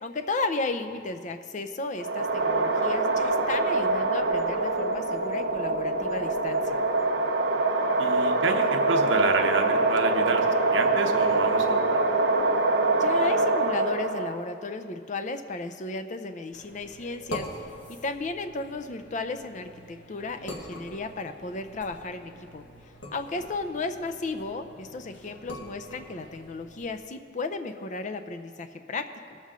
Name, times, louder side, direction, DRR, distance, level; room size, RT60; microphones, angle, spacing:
voice 1, 0.0-6.8 13.0-17.7 18.0-22.6 23.1-29.4, left 3 dB, 40° left, 8 dB, 0.5 m, -34 dB
sound 1, 2.0-14.4, right 2 dB, 60° right, 1.1 m, -24 dB
voice 2, 8.0-12.0, right 4 dB, 80° right, 4 dB, 0.9 m, -29 dB
sound 2, 16.5-27.0, left 1 dB, 75° left, 1.5 m, -44 dB
18.5 x 7.4 x 3.7 m, 2.4 s
head